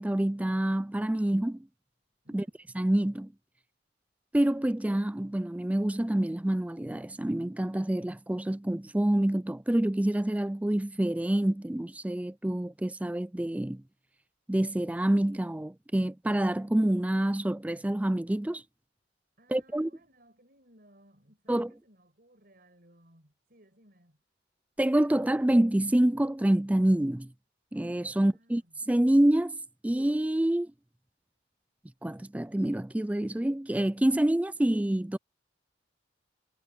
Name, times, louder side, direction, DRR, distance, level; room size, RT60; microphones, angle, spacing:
voice 1, 0.0-1.7 2.3-2.4 2.8-3.3 4.3-13.8 14.5-18.6 19.5-19.9 21.5-21.7 24.8-27.3 27.7-28.6 28.9-29.6 29.8-30.7 32.0-35.2, right 1 dB, 10° right, 0.3 m, -27 dB
voice 2, 2.2-2.6 19.4-24.2 28.1-28.8, right 1 dB, 50° right, 6.5 m, -61 dB
head